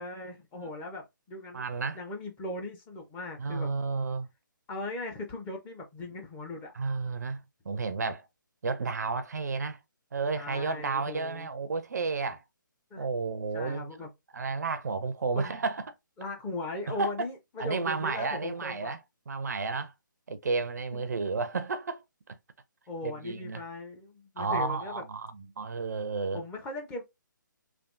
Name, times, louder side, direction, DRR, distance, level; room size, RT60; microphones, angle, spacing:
voice 1, 0.0-1.6 1.9-3.7 4.7-6.7 10.4-11.5 12.9-13.1 13.5-14.1 15.4-15.6 16.2-18.9 20.9-21.1 22.9-25.0 26.3-27.0, left 2 dB, 10° left, 0.5 m, -38 dB
voice 2, 1.5-2.0 3.4-4.3 6.7-8.2 8.6-9.8 10.1-12.4 13.0-14.0 14.3-15.9 16.9-17.1 17.6-19.0 19.3-19.9 20.3-22.4 23.0-23.6 24.4-26.4, right 4 dB, 55° right, 0.4 m, -32 dB
3.4 x 2.4 x 2.5 m
figure-of-eight pair, 140°, 11 cm